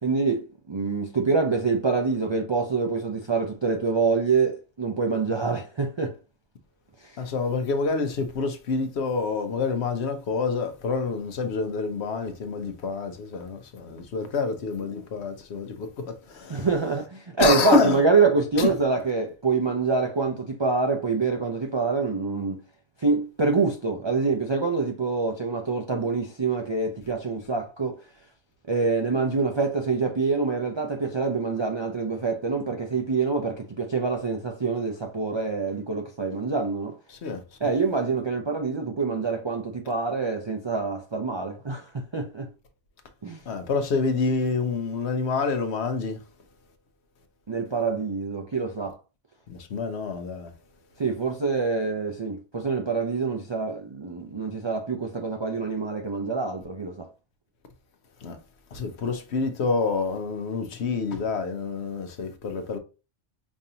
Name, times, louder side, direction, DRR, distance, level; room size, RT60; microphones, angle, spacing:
voice 1, 0.0-6.2 7.0-7.2 16.5-22.6 23.0-28.0 28.7-37.0 37.6-42.5 43.2-43.4 47.5-49.0 51.0-57.1, right 4 dB, 45° right, 0.3 m, -26 dB
voice 2, 7.2-16.7 17.4-18.0 18.6-18.7 37.1-37.7 43.5-46.2 49.5-50.5 58.2-58.4 58.7-62.8, left 4 dB, 70° left, 1.0 m, -27 dB
5.2 x 2.6 x 2.8 m
omnidirectional pair, 1.2 m